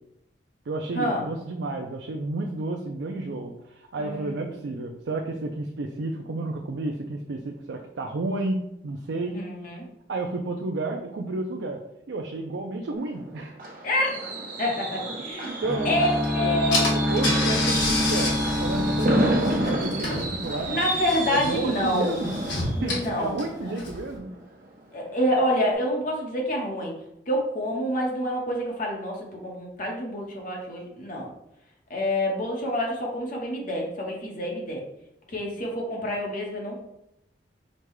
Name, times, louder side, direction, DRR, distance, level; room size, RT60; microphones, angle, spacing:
voice 1, 0.7-9.4 10.1-11.8 12.1-13.6 15.5-16.0 16.4-18.3 18.6-20.7 21.3-22.3 22.8-24.3, right 2 dB, 75° right, 3 dB, 0.4 m, -31 dB
voice 2, 4.0-4.5 9.2-9.8 13.8-14.3 14.6-15.5 15.8-17.0 20.7-22.2 22.8-23.7 24.9-27.0 27.3-31.3 31.9-34.8 35.3-36.8, equal, 50° left, -1 dB, 1.0 m, -27 dB
Fireworks, 12.9-24.6 25.0-25.3 25.6-25.7, right 1 dB, 50° right, 1.1 m, -31 dB
sound 1, 15.6-20.6, left 1 dB, 5° right, 0.5 m, -27 dB
Car / Engine, 16.2-16.3 16.7-24.1, left 2 dB, 85° left, 1.4 m, -30 dB
5.2 x 2.2 x 4.7 m, 0.82 s
head